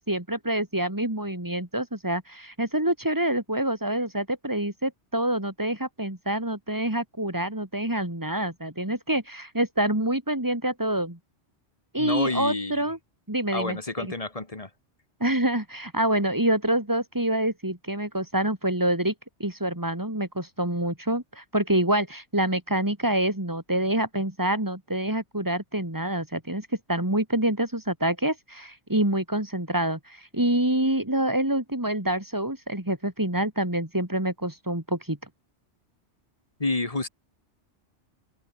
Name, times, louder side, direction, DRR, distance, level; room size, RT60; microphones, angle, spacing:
voice 1, 0.0-11.2 11.9-13.0 13.3-14.1 15.2-19.1 19.4-35.2, right 1 dB, 15° right, 3.1 m, -26 dB
voice 2, 12.0-12.9 13.5-14.7 36.6-37.1, left 2 dB, 30° left, 1.7 m, -29 dB
omnidirectional pair, 1.2 m